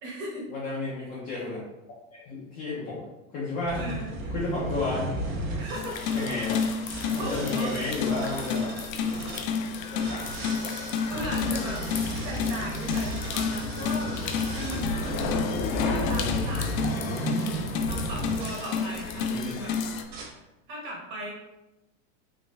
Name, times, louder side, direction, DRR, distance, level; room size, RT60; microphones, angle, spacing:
voice 1, 0.0-0.5 3.8-4.3 5.0-5.1 5.6-6.0 7.1-7.8 11.1-11.8 12.2-15.2 15.7-17.1 17.9-19.7 20.2-20.4 20.7-21.3, right 1 dB, 25° right, -3 dB, 1.2 m, -37 dB
voice 2, 0.5-1.6 2.1-3.1 3.3-3.9 4.3-5.2 6.1-6.6 7.1-8.7 9.9-10.4 16.2-16.4 19.1-19.6, left 3 dB, 20° left, -7 dB, 0.4 m, -32 dB
sound 1, 3.7-9.5 9.9-18.7 19.4-19.7 20.1-20.2, right 1 dB, 55° right, 1.3 m, -34 dB
sound 2, 5.7-20.0, left 5 dB, 85° left, 0.6 m, -30 dB
4.1 x 2.5 x 3.3 m, 0.96 s
supercardioid pair, 160°, 40 cm